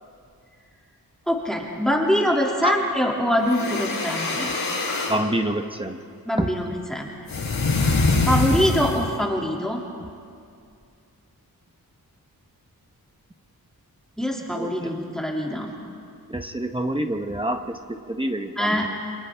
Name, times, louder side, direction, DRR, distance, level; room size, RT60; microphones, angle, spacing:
voice 1, 1.3-4.6 6.3-6.6 6.9-7.1 8.3-9.8 14.2-15.7 18.6-18.9, equal, ahead, -2 dB, 2.3 m, -23 dB
sound 1, 3.4-5.2 7.3-9.2, left 3 dB, 70° left, 4.3 m, -24 dB
voice 2, 5.1-6.0 6.4-6.5 14.5-14.7 16.3-17.8 18.1-18.9, right 1 dB, 15° right, 5 dB, 0.9 m, -26 dB
29.5 x 27.0 x 3.4 m, 2.4 s
wide cardioid pair, 150°, 36 cm